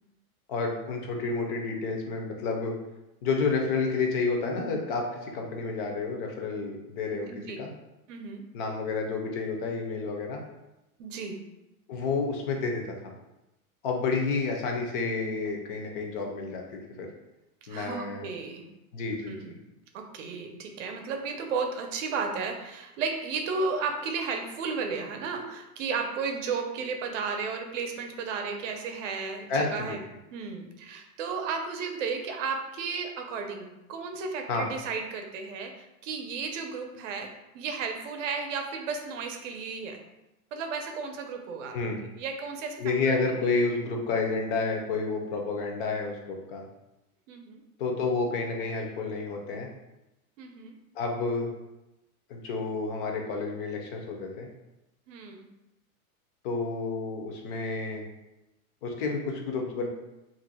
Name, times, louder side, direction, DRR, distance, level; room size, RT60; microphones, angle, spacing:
voice 1, 0.5-2.8 3.2-7.3 7.6-7.7 8.5-10.4 11.9-13.1 13.8-17.1 17.7-18.3 18.9-19.3 29.5-30.0 34.5-34.7 41.7-42.0 42.8-46.6 47.8-49.7 51.0-51.5 52.3-54.5 56.4-58.1 58.8-59.9, left 4 dB, 40° left, 1 dB, 0.5 m, -30 dB
voice 2, 8.1-8.4 11.0-11.4 17.7-18.6 19.3-19.6 19.9-30.0 30.3-37.3 37.5-40.0 40.5-41.7 42.2-42.8 43.1-43.2 47.3-47.6 50.4-50.7 55.1-55.5, right 5 dB, 55° right, 4 dB, 0.6 m, -33 dB
2.6 x 2.1 x 4.0 m, 0.95 s
supercardioid pair, 155°, 44 cm